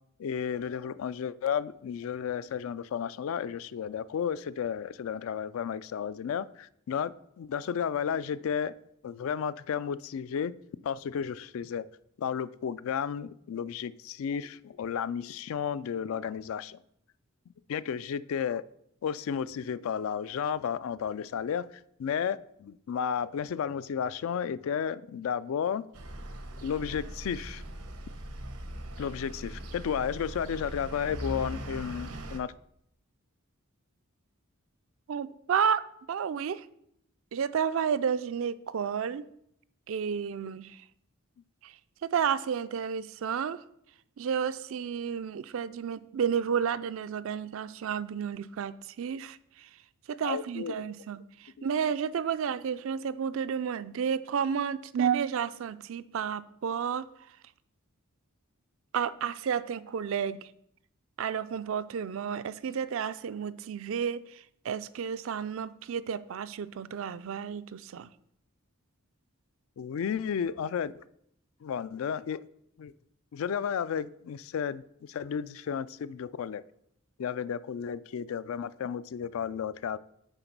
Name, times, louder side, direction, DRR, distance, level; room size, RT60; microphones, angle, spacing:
voice 1, 0.2-7.1 7.4-8.7 9.0-10.5 10.8-11.9 12.2-16.8 17.7-18.6 19.0-21.7 22.0-25.8 26.6-27.6 29.0-32.5 50.2-50.8 51.6-51.7 69.8-71.0 71.6-72.4 72.8-72.9 73.3-76.6 77.2-80.0, left 7 dB, 65° left, 17 dB, 0.3 m, -33 dB
sound 1, 25.9-32.4, equal, 90° right, 0.9 m, -40 dB
voice 2, 35.1-35.8 36.1-36.7 37.3-39.3 39.9-40.8 41.6-41.7 42.0-43.6 44.2-49.7 50.1-57.1 58.9-60.5 61.2-68.1, right 7 dB, 65° right, 14 dB, 0.4 m, -31 dB
9.0 x 3.9 x 5.9 m, 0.74 s
head